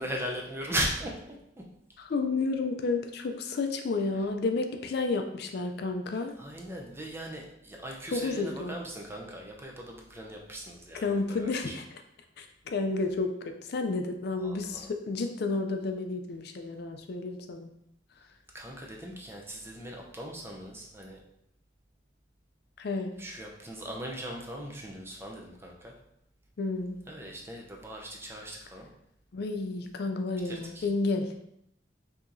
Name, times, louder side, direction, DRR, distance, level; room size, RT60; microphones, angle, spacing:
voice 1, 0.0-1.4 6.4-11.8 14.4-14.9 18.5-21.2 23.2-25.9 27.1-28.9 30.4-30.9, right 1 dB, 15° right, -1 dB, 0.5 m, -38 dB
voice 2, 2.0-6.3 8.1-8.8 11.0-11.8 12.4-13.3 13.7-17.7 22.8-23.1 26.6-26.9 29.3-31.4, left 3 dB, 55° left, 5 dB, 0.4 m, -31 dB
4.8 x 2.8 x 2.6 m, 0.76 s
head